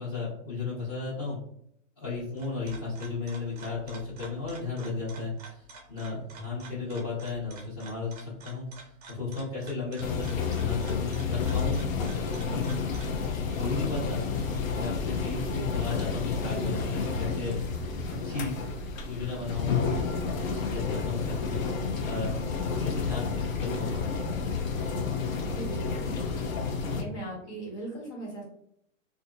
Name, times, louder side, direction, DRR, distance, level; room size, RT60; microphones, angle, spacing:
voice 1, 0.0-1.4 2.0-10.2 10.6-12.7 13.5-14.2 14.7-18.6 19.0-20.0 20.5-22.3 22.8-24.3, left 4 dB, 20° left, -12 dB, 1.0 m, -35 dB
sound 1, 2.1-13.2, right 3 dB, 30° right, 0.5 m, -49 dB
sound 2, 10.0-27.0, left 5 dB, 90° left, 0.7 m, -31 dB
sound 3, 11.4-24.4, equal, 45° left, 0.6 m, -45 dB
voice 2, 25.4-26.4 26.8-28.4, right 2 dB, 60° left, -2 dB, 1.4 m, -39 dB
2.6 x 2.4 x 2.5 m, 0.71 s
hypercardioid pair, 165°, 39 cm